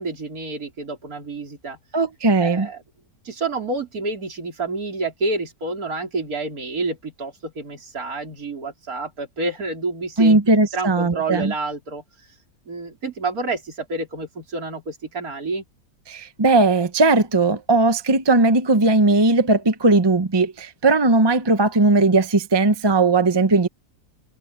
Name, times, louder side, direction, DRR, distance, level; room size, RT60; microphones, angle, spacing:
voice 1, 0.0-1.8 2.4-2.8 3.2-10.4 10.7-12.0 12.7-15.6, right 3 dB, 60° right, 4.7 m, -29 dB
voice 2, 1.9-2.7 10.2-11.5 16.1-23.7, right 3 dB, 25° right, 0.6 m, -18 dB
omnidirectional pair, 1.8 m